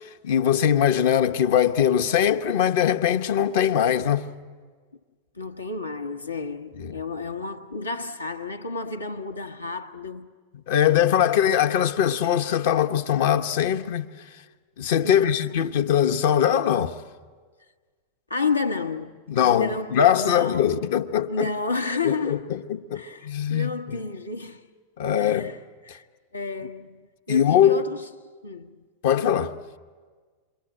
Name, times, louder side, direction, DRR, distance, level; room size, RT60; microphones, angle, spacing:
voice 1, 0.2-4.3 6.8-7.0 10.7-14.1 14.8-17.0 19.3-21.5 22.0-22.6 22.9-24.0 25.0-25.5 27.3-27.9 29.0-29.5, left 9 dB, 55° left, 1.0 m, -21 dB
voice 2, 5.3-10.3 15.0-15.6 18.3-20.9 21.3-22.5 22.9-24.6 25.2-26.1 26.3-27.0 27.3-28.1 28.4-28.8, left 4 dB, 80° left, 1.3 m, -31 dB
28.5 x 23.5 x 8.9 m
figure-of-eight pair, 90°, 0 cm